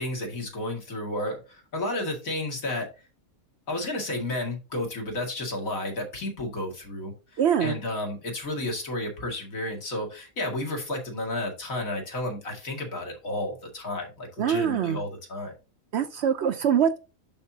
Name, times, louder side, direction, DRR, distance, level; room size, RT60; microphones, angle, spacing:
voice 1, 0.0-2.9 3.7-15.5, left 1 dB, 75° left, 1 dB, 2.6 m, -32 dB
voice 2, 7.4-7.7 14.4-15.0 15.9-17.0, right 8 dB, 60° right, 11 dB, 0.7 m, -23 dB
12.0 x 4.3 x 2.7 m, 0.30 s
omnidirectional pair, 1.4 m